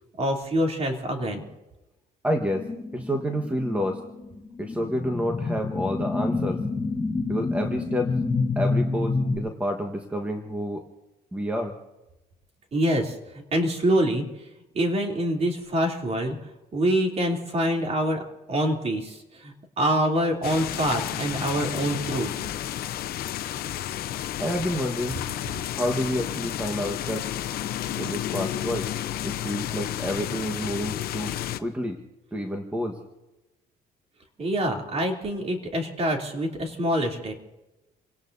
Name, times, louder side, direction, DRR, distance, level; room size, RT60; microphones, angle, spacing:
voice 1, 0.2-1.4 12.7-14.5 14.7-18.2 18.5-22.3 34.4-37.3, right 1 dB, 40° right, 1 dB, 3.2 m, -26 dB
voice 2, 2.2-4.0 4.6-6.6 7.3-8.2 8.5-10.9 11.3-11.8 24.4-25.2 25.7-27.3 28.0-28.9 29.2-32.0 32.3-33.0, equal, 10° right, 3 dB, 1.4 m, -29 dB
sound 1, 2.5-9.4, left 3 dB, 25° left, 6.1 m, -28 dB
sound 2, 20.4-31.6, left 12 dB, 65° left, 0.7 m, -31 dB
29.0 x 18.0 x 2.7 m, 1.0 s
cardioid pair, 110°, 17 cm